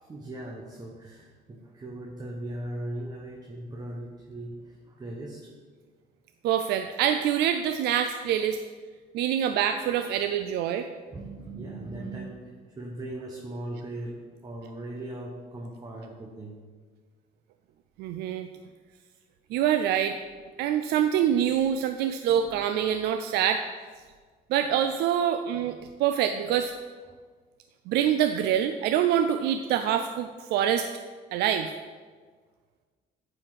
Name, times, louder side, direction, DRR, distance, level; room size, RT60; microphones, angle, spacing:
voice 1, 0.1-5.5 11.1-16.6 20.7-20.8 27.1-27.2, right 1 dB, 20° right, -1 dB, 0.9 m, -39 dB
voice 2, 6.4-8.6 9.1-10.9 18.0-18.5 19.5-20.2 20.6-23.6 24.5-26.7 27.9-30.9 31.3-31.7, right 9 dB, 75° right, 8 dB, 0.4 m, -25 dB
8.9 x 4.3 x 4.7 m, 1.5 s
cardioid pair, 110°, 17 cm